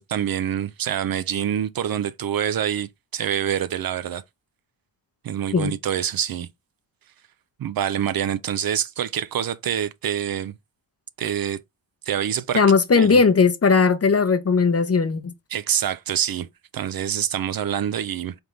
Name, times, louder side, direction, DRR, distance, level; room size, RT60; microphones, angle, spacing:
voice 1, 0.0-4.2 5.2-6.5 7.6-10.5 11.2-11.6 12.1-12.7 12.9-13.2 15.5-16.5 16.7-18.4, right 9 dB, 55° right, 0.4 m, -26 dB
voice 2, 12.5-15.3, left 5 dB, 35° left, 0.7 m, -18 dB
3.7 x 3.5 x 3.1 m
cardioid pair, 65°, 44 cm